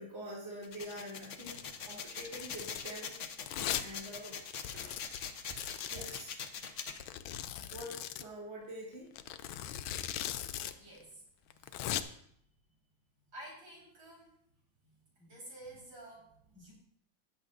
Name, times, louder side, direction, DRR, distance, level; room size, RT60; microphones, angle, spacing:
voice 1, 0.0-3.2 3.5-4.4 5.0-5.2 5.9-6.4 7.6-9.1, equal, 30° right, -5 dB, 2.5 m, -46 dB
sound 1, 0.6-7.0, left 6 dB, 55° left, 0.8 m, -43 dB
Domestic sounds home sounds, 1.4-1.7 2.2-2.9 3.5-3.9 4.2-4.3 4.5-6.2 7.0-8.3 9.2-10.7 11.0-11.1 11.5-12.0, left 11 dB, 85° left, 1.4 m, -39 dB
sound 2, 4.6-7.3 10.5-11.0 11.6-11.9, equal, 20° left, 4.8 m, -57 dB
voice 2, 10.8-11.2 11.6-11.7 13.3-14.3 14.8-16.7, right 1 dB, 70° right, -4 dB, 4.8 m, -51 dB
19.0 x 7.5 x 2.5 m, 0.69 s
omnidirectional pair, 2.2 m